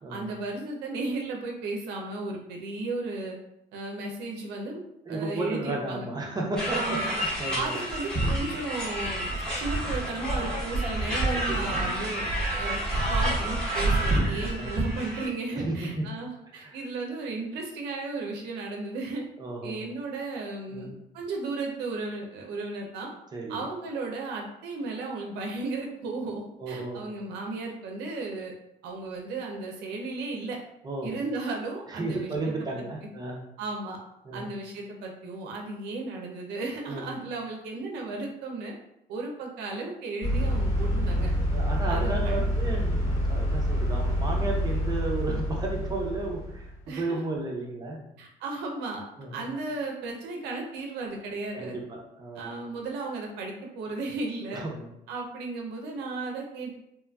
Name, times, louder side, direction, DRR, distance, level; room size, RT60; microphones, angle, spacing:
voice 1, 0.1-3.4 3.7-4.8 5.1-6.1 6.8-7.1 7.5-12.2 12.6-12.8 13.1-19.3 19.6-23.1 23.5-28.5 28.8-30.6 31.0-32.3 33.6-34.0 34.3-38.7 39.1-41.3 41.9-42.4 46.9-47.2 48.2-49.0 49.3-51.7 52.4-54.6 55.1-56.8, right 3 dB, 85° right, 0 dB, 0.5 m, -35 dB
voice 2, 5.1-7.8 11.3-11.8 14.4-14.7 15.5-16.1 16.5-16.8 19.4-19.8 20.7-20.9 23.3-23.6 26.6-27.1 30.8-31.2 31.9-33.4 34.2-34.5 36.9-37.1 41.5-48.1 49.2-49.5 51.5-52.6 54.5-54.9, right 2 dB, 25° right, -1 dB, 0.5 m, -33 dB
sound 1, 6.6-15.3, right 1 dB, 5° left, 1.1 m, -28 dB
sound 2, 40.2-46.8, equal, 80° left, 1.3 m, -27 dB
3.0 x 2.3 x 2.2 m, 0.80 s
cardioid pair, 110°, 17 cm